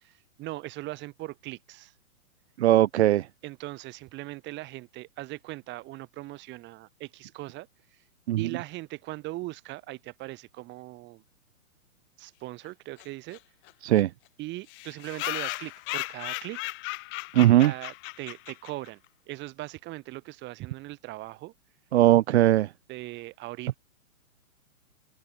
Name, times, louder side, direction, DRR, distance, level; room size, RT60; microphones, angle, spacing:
voice 1, 0.0-1.9 3.4-8.0 8.4-11.2 12.2-13.4 14.4-16.7 17.5-19.0 19.3-21.5 22.9-23.8, right 19 dB, 25° right, 4.4 m, -39 dB
voice 2, 2.6-3.3 8.3-8.4 13.8-14.1 17.3-17.7 21.9-22.7, right 14 dB, 50° right, 1.9 m, -19 dB
sound 1, 13.0-13.1 13.3-13.4 13.7-13.8 14.0-14.1 14.7-18.9, left 25 dB, 25° left, 2.6 m, -36 dB
hypercardioid pair, 145°, 42 cm